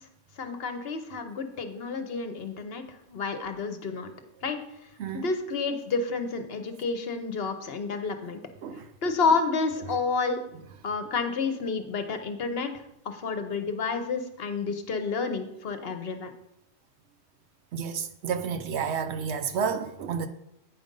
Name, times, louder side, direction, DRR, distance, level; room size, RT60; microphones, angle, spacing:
voice 1, 0.4-2.8 3.1-4.1 4.4-4.6 5.1-8.4 9.0-10.4 10.8-12.7 13.0-16.3, left 4 dB, 55° left, 0.9 m, -30 dB
voice 2, 17.7-20.3, right 6 dB, 70° right, 0.9 m, -30 dB
8.9 x 5.1 x 5.2 m
omnidirectional pair, 1.3 m